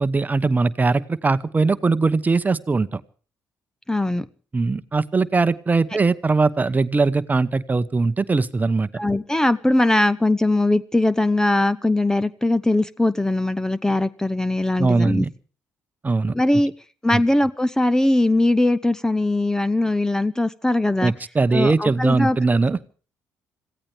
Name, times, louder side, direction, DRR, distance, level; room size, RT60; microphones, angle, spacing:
voice 1, 0.0-3.0 4.5-8.9 14.8-15.3 16.0-16.3 17.1-17.2 21.0-22.9, right 3 dB, 25° right, 14 dB, 0.9 m, -20 dB
voice 2, 3.9-4.3 8.9-15.2 16.3-16.7 17.0-21.1 21.5-22.4, left 1 dB, 10° left, 17 dB, 0.7 m, -20 dB
26.0 x 16.0 x 3.4 m, 0.39 s
supercardioid pair, 70°, 6 cm